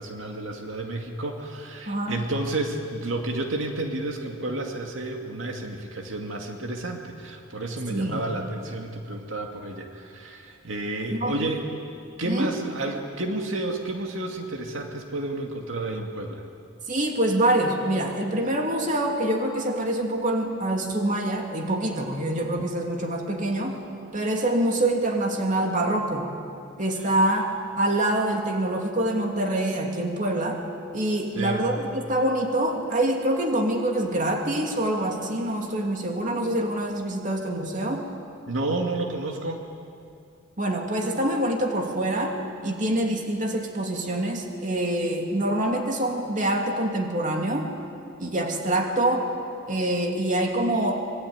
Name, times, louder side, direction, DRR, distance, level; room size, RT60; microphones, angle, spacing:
voice 1, 0.0-11.6 12.2-16.4 31.3-31.7 38.5-39.6, right 2 dB, 75° right, 2 dB, 2.3 m, -31 dB
voice 2, 1.9-2.2 7.9-8.2 11.1-11.5 12.2-12.5 16.9-23.8 24.1-26.3 26.8-30.6 30.9-38.1 40.6-42.3 42.6-47.7 48.2-49.3 49.7-51.0, right 1 dB, 40° right, 2 dB, 2.9 m, -25 dB
25.0 x 22.5 x 9.6 m, 2.5 s
head